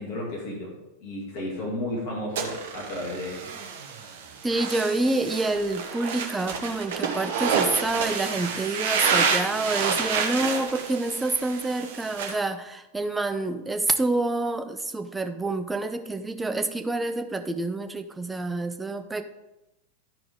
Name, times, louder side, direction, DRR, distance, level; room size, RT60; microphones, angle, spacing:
voice 1, 0.0-3.5, left 1 dB, 45° left, -2 dB, 2.5 m, -33 dB
sound 1, 2.4-12.3, right 6 dB, 55° right, 1.0 m, -29 dB
voice 2, 4.4-19.2, right 2 dB, 10° right, 8 dB, 0.6 m, -27 dB
12.0 x 4.8 x 3.7 m, 0.94 s
figure-of-eight pair, 90°, 0 cm